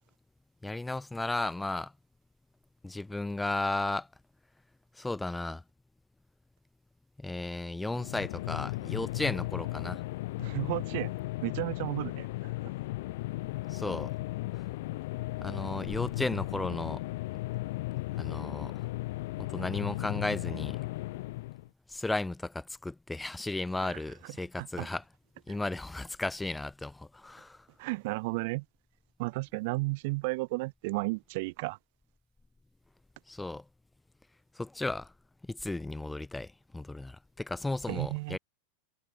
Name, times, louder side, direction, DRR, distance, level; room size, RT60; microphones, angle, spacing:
voice 1, 0.6-1.9 2.8-4.1 5.0-5.6 7.2-10.0 13.7-14.1 15.4-17.0 18.2-18.8 19.4-20.8 21.9-25.0 25.5-27.6 33.3-33.6 34.5-35.1 35.5-38.4, left 2 dB, 5° left, 3.3 m, -34 dB
sound 1, 7.9-21.7, left 19 dB, 65° left, 3.9 m, -36 dB
voice 2, 10.4-11.1 11.4-12.3 23.8-24.9 25.5-25.6 27.8-28.6 29.2-31.8 37.9-38.4, right 25 dB, 60° right, 3.3 m, -33 dB
hypercardioid pair, 110°, 0 cm